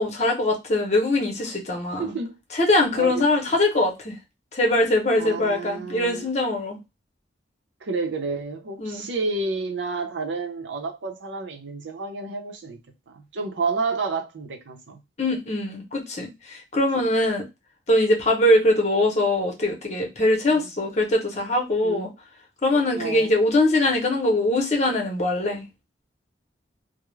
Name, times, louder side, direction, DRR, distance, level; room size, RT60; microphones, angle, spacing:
voice 1, 0.0-2.1 2.5-4.2 4.5-6.8 8.8-9.0 15.2-17.4 17.9-22.1 22.6-25.6, left 1 dB, 40° left, 0.8 m, -22 dB
voice 2, 2.0-2.3 3.0-3.3 5.2-6.3 7.8-12.8 13.1-15.0 20.5-20.7 21.8-22.1 22.9-23.3, right 4 dB, 85° right, 0.6 m, -30 dB
2.3 x 2.0 x 3.0 m
head